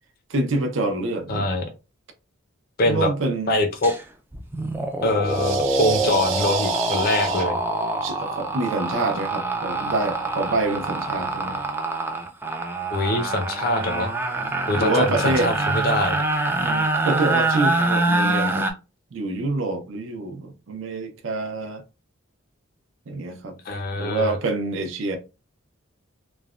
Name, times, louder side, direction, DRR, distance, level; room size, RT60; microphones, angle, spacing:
voice 1, 0.3-1.6 2.9-3.6 5.4-7.5 8.0-11.6 14.8-15.5 16.6-18.7 19.1-21.8 23.1-23.6 23.9-25.2, right 2 dB, 70° right, 0.6 m, -27 dB
voice 2, 1.3-1.7 2.8-3.1 3.5-3.9 5.0-7.6 12.9-14.1 14.7-16.2 23.6-24.4, left 1 dB, 45° left, 0.5 m, -23 dB
sound 1, 3.8-4.0 4.3-18.7, right 2 dB, 10° right, 0.3 m, -25 dB
3.2 x 2.1 x 2.3 m
head